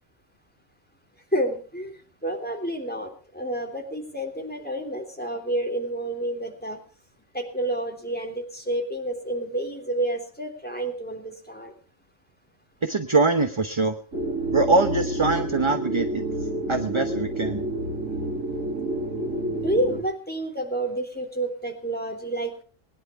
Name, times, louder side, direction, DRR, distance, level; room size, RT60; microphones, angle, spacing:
voice 1, 1.3-6.8 7.3-11.7 19.5-22.6, right 1 dB, 5° left, 4 dB, 3.3 m, -29 dB
voice 2, 12.8-14.0 14.5-16.2 16.7-17.7, right 3 dB, 25° right, 8 dB, 0.9 m, -23 dB
sound 1, 14.1-20.0, right 1 dB, 80° right, 3.7 m, -29 dB
21.0 x 10.5 x 4.7 m, 0.40 s
omnidirectional pair, 1.3 m